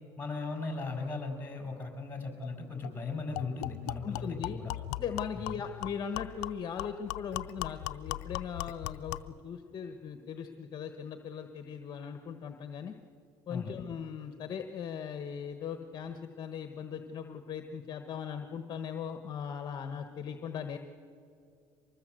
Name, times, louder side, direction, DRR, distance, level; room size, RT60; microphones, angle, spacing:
voice 1, 0.2-4.7 5.3-5.6 13.5-13.8, left 3 dB, 20° left, 4 dB, 5.7 m, -37 dB
sound 1, 2.4-2.5 2.8-3.0 3.4-9.4, left 17 dB, 85° left, 0.6 m, -39 dB
voice 2, 4.0-4.6 5.0-12.9 13.5-20.8, left 7 dB, 45° left, 7 dB, 1.3 m, -39 dB
24.0 x 20.0 x 7.8 m, 2.4 s
supercardioid pair, 100°, 10 cm